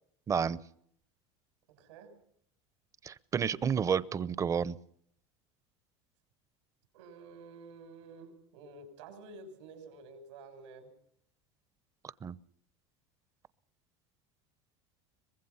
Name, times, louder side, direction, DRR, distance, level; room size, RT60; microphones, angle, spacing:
voice 1, 0.3-0.6 3.0-4.8 12.2-12.3, right 7 dB, 20° right, 19 dB, 0.7 m, -30 dB
voice 2, 1.8-2.1 6.9-10.9, right 3 dB, 90° right, 6 dB, 6.5 m, -50 dB
23.5 x 21.0 x 5.7 m, 0.68 s
supercardioid pair, 140°, 15 cm